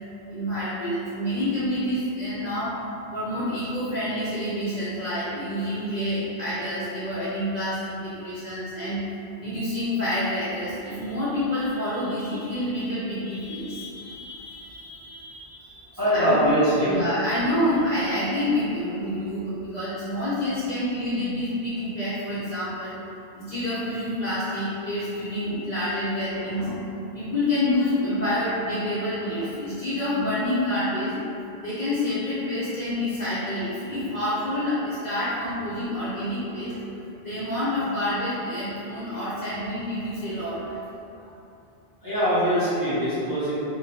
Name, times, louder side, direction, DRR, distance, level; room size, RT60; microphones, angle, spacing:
voice 1, 0.3-2.8 3.1-9.0 9.4-15.9 16.2-16.5 16.8-22.9 23.4-26.9 27.1-31.2 31.6-36.8 37.2-40.8, left 1 dB, 50° left, -10 dB, 0.6 m, -28 dB
voice 2, 16.0-17.0 42.0-43.5, equal, 20° right, -13 dB, 0.9 m, -22 dB
2.9 x 2.6 x 2.7 m, 2.8 s
omnidirectional pair, 1.1 m